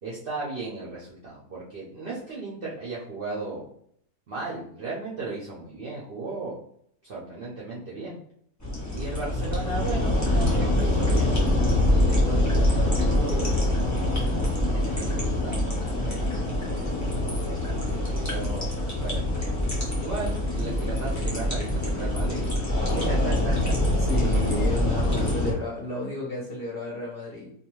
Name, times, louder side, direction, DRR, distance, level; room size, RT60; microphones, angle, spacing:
voice 1, 0.0-3.7 4.3-6.6 7.0-8.2 8.9-13.7 14.7-15.8 16.0-16.7 17.9-19.7 20.0-22.5 22.9-23.7, right 3 dB, 60° right, -6 dB, 0.5 m, -36 dB
sound 1, 8.6-25.5, left 1 dB, 20° left, 0.5 m, -24 dB
voice 2, 24.0-27.5, left 2 dB, 50° left, -5 dB, 0.7 m, -32 dB
2.5 x 2.3 x 3.0 m, 0.65 s
omnidirectional pair, 1.6 m